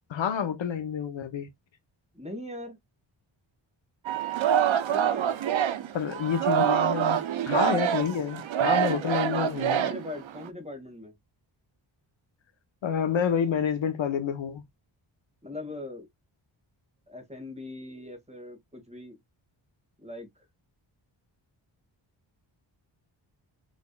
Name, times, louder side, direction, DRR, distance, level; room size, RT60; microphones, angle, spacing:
voice 1, 0.1-1.5 5.9-9.9 12.8-14.6, left 7 dB, 70° left, 1.0 m, -28 dB
voice 2, 2.1-2.8 4.9-5.3 8.7-9.1 9.4-11.1 15.4-16.1 17.1-19.2 20.0-20.5, left 2 dB, 15° right, 2.0 m, -40 dB
Singing, 4.0-10.5, right 10 dB, 75° right, 0.8 m, -26 dB
6.2 x 3.4 x 2.3 m
wide cardioid pair, 100°, 47 cm